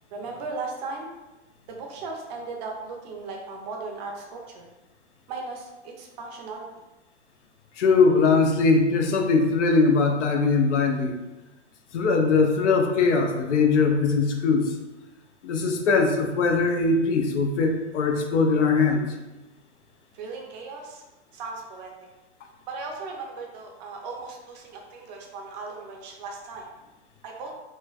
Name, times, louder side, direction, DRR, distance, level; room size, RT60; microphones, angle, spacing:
voice 1, 0.1-1.1 1.7-4.7 5.3-6.7 20.1-21.0 21.3-21.9 22.7-26.7 27.2-27.5, right 3 dB, 40° right, 0 dB, 0.5 m, -37 dB
voice 2, 7.8-11.2 11.9-14.7 15.4-19.0, left 4 dB, 75° left, 3 dB, 0.6 m, -21 dB
3.1 x 2.1 x 2.3 m, 1.1 s
hypercardioid pair, 125°, 35 cm